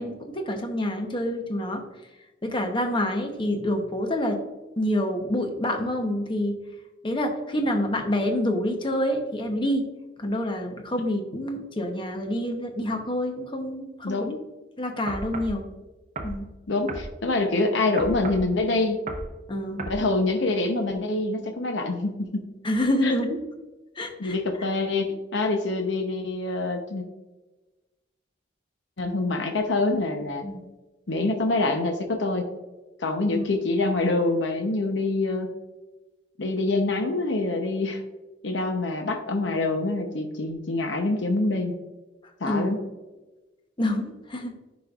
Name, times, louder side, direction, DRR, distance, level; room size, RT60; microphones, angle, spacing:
voice 1, 0.0-1.8 2.4-4.4 4.8-6.6 7.0-9.9 10.2-14.3 14.8-15.7 16.2-16.5 19.5-19.8 22.6-23.4 24.0-24.4 30.4-30.6 33.3-33.4 42.4-42.8 43.8-44.5, left 1 dB, 25° left, 4 dB, 0.8 m, -27 dB
voice 2, 14.0-14.4 16.7-19.1 19.9-22.5 23.0-23.1 24.2-27.0 29.0-30.4 31.1-32.5 33.0-35.5 36.4-38.0 38.4-41.7 42.4-42.8, left 2 dB, 70° left, 4 dB, 0.7 m, -25 dB
sound 1, 15.1-15.6 16.2-16.4 16.9-17.1 18.0-18.5 19.1-19.3 19.8-20.0, right 2 dB, 40° right, 0.7 m, -34 dB
10.0 x 5.1 x 2.4 m, 1.1 s
head